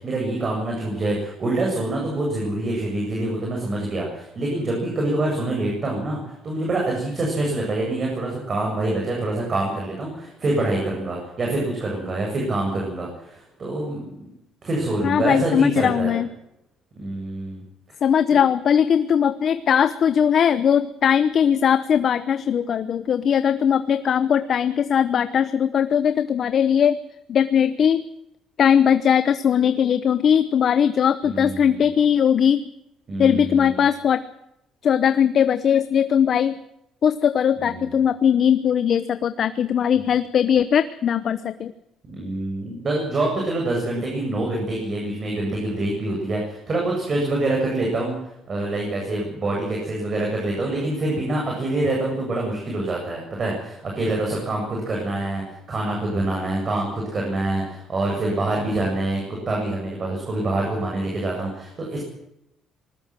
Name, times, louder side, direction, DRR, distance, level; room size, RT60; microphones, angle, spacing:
voice 1, 0.0-6.2 6.4-14.1 14.6-16.1 17.0-17.6 31.2-31.9 33.1-33.8 37.6-38.0 42.1-55.4 55.7-62.0, right 2 dB, 35° right, -1 dB, 8.0 m, -26 dB
voice 2, 15.0-16.3 18.0-27.0 27.3-28.0 28.6-32.7 33.2-34.2 34.8-36.5 37.0-41.7, left 8 dB, 50° left, 12 dB, 0.9 m, -19 dB
20.5 x 19.0 x 7.6 m, 0.83 s
cardioid pair, 125°, 0 cm